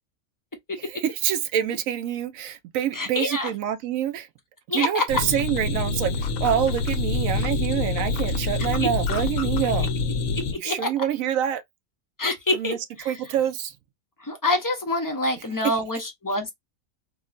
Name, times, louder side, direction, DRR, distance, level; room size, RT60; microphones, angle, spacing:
voice 1, 0.8-4.3 4.7-9.9 10.6-11.6 12.5-13.8 15.6-15.7, right 10 dB, 80° right, 1.0 m, -26 dB
voice 2, 2.9-3.5 4.7-5.0 8.8-8.9 10.6-10.9 12.2-13.1 14.2-16.5, left 2 dB, 25° left, 0.5 m, -26 dB
sound 1, 5.1-10.5, left 3 dB, 80° left, 1.1 m, -26 dB
3.6 x 2.1 x 2.4 m
omnidirectional pair, 1.4 m